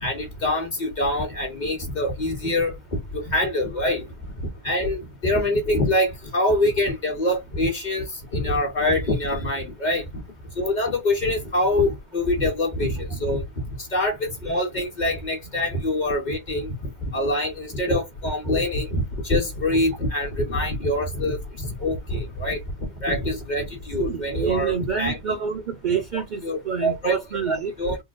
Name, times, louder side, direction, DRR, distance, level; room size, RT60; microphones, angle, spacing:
voice 1, 0.0-2.8 3.1-4.0 4.6-8.1 8.3-10.0 10.6-13.4 13.9-22.6 23.0-25.2 26.4-27.2 27.5-28.0, left 1 dB, 40° left, 1.2 m, -25 dB
voice 2, 24.0-27.7, right 6 dB, 55° right, 0.6 m, -27 dB
3.8 x 2.2 x 2.4 m
omnidirectional pair, 1.1 m